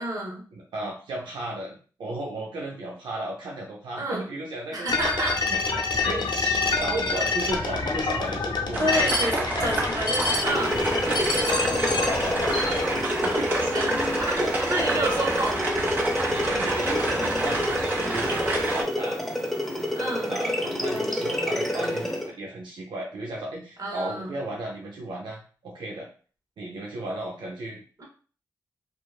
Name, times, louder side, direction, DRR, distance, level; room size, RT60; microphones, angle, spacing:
voice 1, 0.0-0.4 4.0-4.2 4.7-5.4 6.0-6.1 8.8-9.3 9.6-10.7 13.7-14.3 14.7-15.5 19.9-20.4 23.8-24.3 28.0-28.1, right 1 dB, 50° right, -1 dB, 1.1 m, -29 dB
voice 2, 0.5-4.9 5.5-5.6 6.1-9.7 11.1-13.9 14.3-14.5 15.0-15.3 16.1-19.2 20.3-26.1 26.6-28.0, right 1 dB, 85° right, -1 dB, 0.5 m, -34 dB
sound 1, 4.9-12.8, left 3 dB, 65° left, 0.5 m, -27 dB
sound 2, 8.7-18.8, right 2 dB, 25° right, 1.2 m, -29 dB
sound 3, 10.5-22.3, left 1 dB, 5° left, 0.7 m, -28 dB
2.8 x 2.3 x 2.3 m, 0.39 s
cardioid pair, 45°, 8 cm